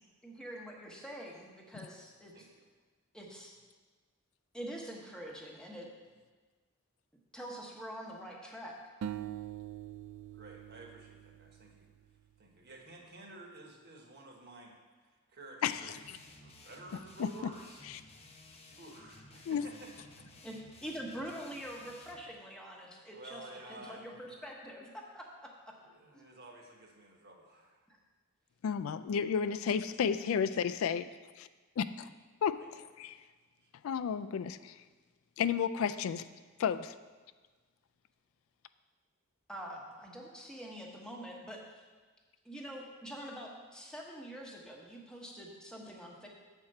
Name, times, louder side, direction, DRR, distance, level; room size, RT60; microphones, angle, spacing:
voice 1, 0.2-2.5 3.1-3.5 4.5-5.9 7.3-8.8 20.4-23.4 23.7-25.2 26.1-26.3 27.9-28.0 39.5-41.8 42.4-46.3, equal, 5° left, -2 dB, 1.0 m, -45 dB
voice 2, 2.3-2.6 10.3-11.9 12.4-14.7 15.0-17.9 18.8-19.9 20.1-20.4 23.1-24.4 25.8-27.8 32.6-32.7 33.6-33.7, right 2 dB, 50° right, 0 dB, 1.2 m, -52 dB
sound 1, 9.0-12.2, right 10 dB, 85° right, 0.3 m, -44 dB
voice 3, 15.6-16.2 17.2-17.3 19.5-19.7 28.6-31.1 31.4-31.5 31.8-32.1 32.4-33.2 33.8-34.8 35.4-36.2 36.6-36.9, left 7 dB, 70° left, 11 dB, 0.3 m, -32 dB
sound 2, 15.7-22.3, left 2 dB, 30° left, 0.7 m, -56 dB
7.3 x 4.5 x 6.5 m, 1.4 s
head